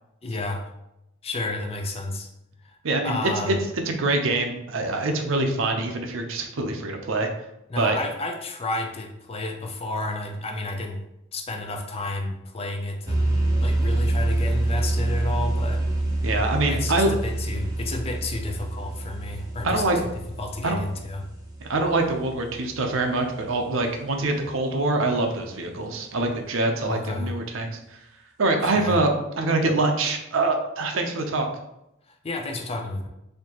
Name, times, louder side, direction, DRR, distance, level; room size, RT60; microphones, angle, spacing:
voice 1, 0.2-0.6 1.2-2.3 2.6-2.8 3.0-3.6 7.7-11.0 11.3-13.2 13.6-15.8 16.7-19.9 20.4-21.3 26.8-27.4 28.6-29.0 32.1-33.1, left 2 dB, 30° left, 3 dB, 0.5 m, -31 dB
voice 2, 2.8-3.5 3.9-7.3 7.8-8.0 16.2-17.1 19.6-20.0 20.6-20.8 21.6-27.8 28.4-29.1 29.4-31.5, right 2 dB, 75° right, 4 dB, 0.6 m, -24 dB
sound 1, 13.0-22.5, right 1 dB, 20° right, 0.8 m, -26 dB
4.3 x 2.7 x 2.9 m, 0.85 s
head